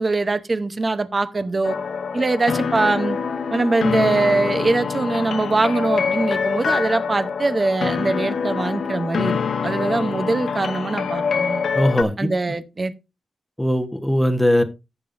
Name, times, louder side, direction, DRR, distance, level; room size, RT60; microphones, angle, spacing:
voice 1, 0.0-1.8 2.1-3.2 3.5-11.6 12.2-12.9, right 3 dB, 30° right, 0.8 m, -22 dB
sound 1, 1.6-12.0, left 6 dB, 75° left, 1.2 m, -25 dB
voice 2, 11.7-12.3 13.6-14.6, left 1 dB, ahead, 1.1 m, -19 dB
15.5 x 7.0 x 2.6 m
wide cardioid pair, 125°, 0 cm